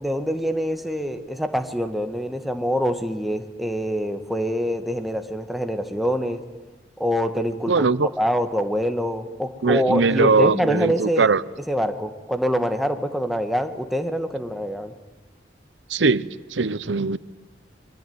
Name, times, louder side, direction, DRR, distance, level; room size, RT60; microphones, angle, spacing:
voice 1, 0.0-6.4 7.0-7.8 8.2-11.3 11.7-14.9, equal, ahead, 1.6 m, -25 dB
voice 2, 7.7-8.1 9.6-11.4 15.9-17.2, right 4 dB, 85° right, 0.8 m, -20 dB
26.0 x 23.5 x 9.5 m
head